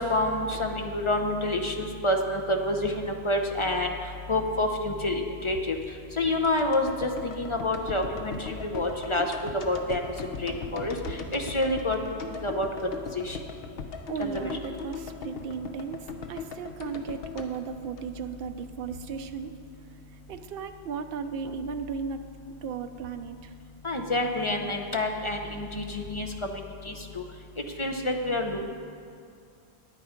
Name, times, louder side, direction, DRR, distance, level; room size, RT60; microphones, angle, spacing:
voice 1, 0.0-3.9 4.3-5.8 6.2-9.3 9.6-10.0 10.4-11.0 11.3-12.0 12.4-12.7 13.1-13.4 14.2-14.3 23.8-26.3 27.8-28.6, left 1 dB, 35° left, 3 dB, 0.6 m, -27 dB
sound 1, 6.4-18.6 18.9-19.0, left 5 dB, 65° left, 0.9 m, -39 dB
voice 2, 14.1-19.5 20.3-22.2 22.6-23.4, right 6 dB, 65° right, 8 dB, 0.8 m, -35 dB
9.9 x 8.6 x 5.1 m, 2.4 s
omnidirectional pair, 1.1 m